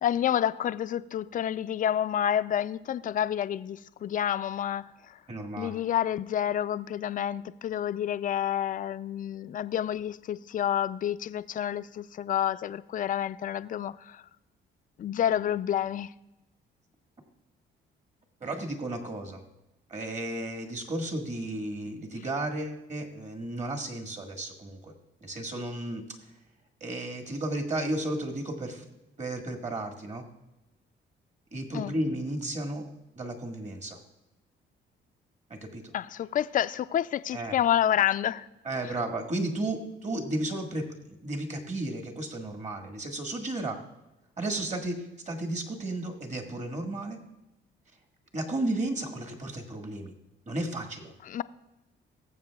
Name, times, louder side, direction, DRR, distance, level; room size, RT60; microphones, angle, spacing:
voice 1, 0.0-5.2 5.6-14.2 15.0-16.1 31.7-31.9 35.9-38.5 51.3-51.4, left 10 dB, 45° left, 0.4 m, -29 dB
voice 2, 5.3-5.7 18.4-19.4 19.9-24.9 25.2-26.1 26.8-28.8 29.2-30.2 31.5-32.8 33.1-34.0 35.5-35.9 37.3-37.6 38.6-43.8 44.4-47.2 48.3-50.1 50.5-51.1, right 1 dB, 35° right, 1.6 m, -33 dB
19.0 x 7.4 x 2.3 m
cardioid pair, 90°, 20 cm